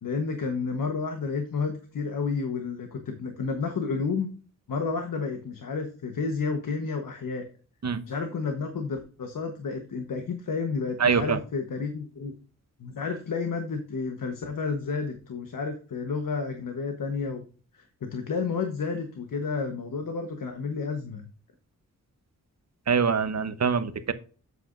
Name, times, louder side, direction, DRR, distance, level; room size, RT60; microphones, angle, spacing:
voice 1, 0.0-4.3 4.7-7.4 8.1-12.3 12.8-17.4 17.7-21.3, left 4 dB, 80° left, 1.2 m, -31 dB
voice 2, 11.0-11.4 22.9-24.1, right 6 dB, 55° right, 1.0 m, -24 dB
8.1 x 7.7 x 2.6 m
cardioid pair, 60°, 32 cm